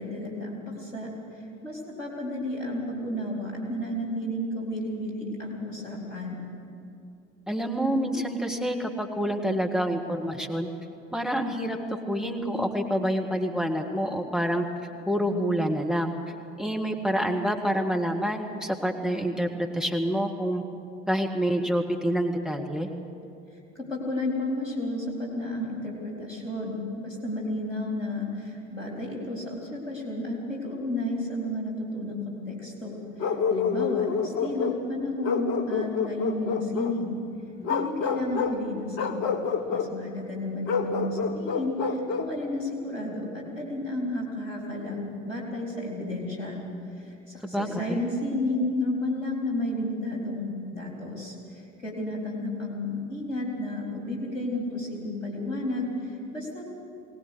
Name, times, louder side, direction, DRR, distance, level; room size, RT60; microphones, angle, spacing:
voice 1, 0.0-6.5 23.8-37.2 37.7-39.3 39.7-46.6 46.9-56.6, left 1 dB, 80° left, -2 dB, 4.1 m, -32 dB
voice 2, 7.5-10.7 11.1-14.7 15.1-16.1 16.6-19.5 19.7-20.6 21.1-22.9 47.4-48.0, equal, ahead, 2 dB, 1.7 m, -27 dB
Bark, 33.2-34.8 35.2-37.0 37.6-38.6 38.9-39.9 40.7-42.3, left 6 dB, 55° left, 1.5 m, -28 dB
21.0 x 19.0 x 8.1 m, 2.6 s
figure-of-eight pair, 70°, 38 cm